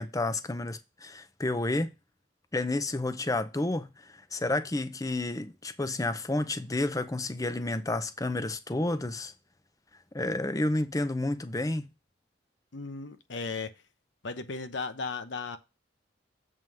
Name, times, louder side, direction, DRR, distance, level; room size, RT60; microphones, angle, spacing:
voice 1, 0.0-1.9 2.5-9.3 10.1-11.9, left 2 dB, 20° left, 0.6 m, -30 dB
voice 2, 12.7-13.7 14.2-15.6, left 4 dB, 75° left, 0.9 m, -36 dB
7.5 x 3.8 x 6.1 m
head